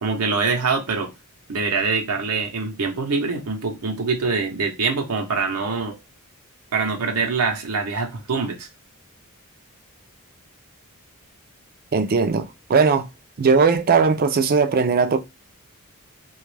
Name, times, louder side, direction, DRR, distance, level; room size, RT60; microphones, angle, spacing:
voice 1, 0.0-1.1 1.5-6.0 6.7-8.7, right 4 dB, 85° right, 0.7 m, -24 dB
voice 2, 11.9-13.1 13.4-15.2, right 5 dB, 40° right, 0.4 m, -18 dB
2.9 x 2.3 x 3.2 m
head